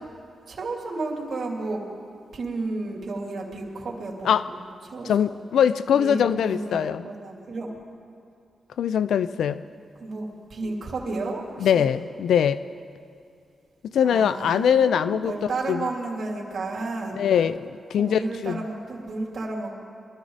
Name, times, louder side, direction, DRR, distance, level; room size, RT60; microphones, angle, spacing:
voice 1, 0.5-1.8 2.3-4.6 4.8-5.4 5.9-7.7 10.0-11.9 14.0-17.2 18.0-19.7, right 3 dB, 55° right, -1 dB, 2.9 m, -32 dB
voice 2, 5.0-7.0 8.8-9.6 11.6-12.6 13.8-15.9 17.2-18.6, left 8 dB, 90° left, 14 dB, 0.3 m, -22 dB
24.0 x 13.5 x 4.0 m, 2.4 s
wide cardioid pair, 115°, 0 cm